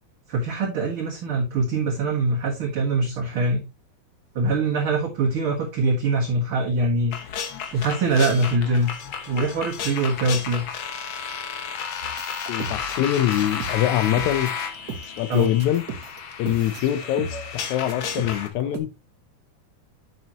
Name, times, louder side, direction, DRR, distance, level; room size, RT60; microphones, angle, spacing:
voice 1, 0.3-3.6 4.4-7.1 7.4-8.9 9.3-10.6 15.3-15.5, right 2 dB, 50° right, 2.0 m, -23 dB
sound 1, 7.1-18.5, left 7 dB, 60° left, 1.4 m, -32 dB
sound 2, 12.0-18.8, right 4 dB, 75° right, 0.9 m, -37 dB
voice 2, 12.5-14.5 15.2-15.8 16.4-18.9, left 12 dB, 75° left, 2.1 m, -24 dB
8.8 x 6.1 x 2.9 m
omnidirectional pair, 3.5 m